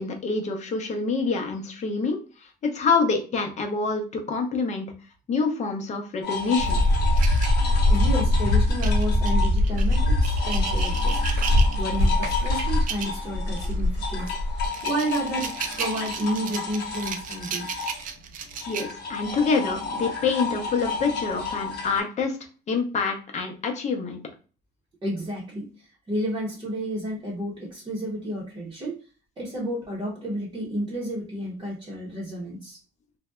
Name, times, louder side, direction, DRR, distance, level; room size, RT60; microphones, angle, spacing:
voice 1, 0.0-2.2 2.6-4.9 5.3-6.8 18.7-22.4 22.7-24.2, left 4 dB, 45° left, 3 dB, 0.7 m, -26 dB
sound 1, 6.2-9.6 9.9-22.0, left 4 dB, 75° left, 0.9 m, -33 dB
sound 2, 6.6-8.2 8.8-12.0 12.7-13.2 13.6-13.7 14.3-19.3, right 7 dB, 55° right, 0.4 m, -35 dB
sound 3, 6.6-14.7, left 1 dB, 75° right, 1.1 m, -22 dB
voice 2, 7.9-11.2 11.8-18.0 25.0-29.0 29.4-32.8, equal, 25° right, -4 dB, 0.8 m, -31 dB
2.6 x 2.1 x 2.2 m, 0.35 s
cardioid pair, 110°, 17 cm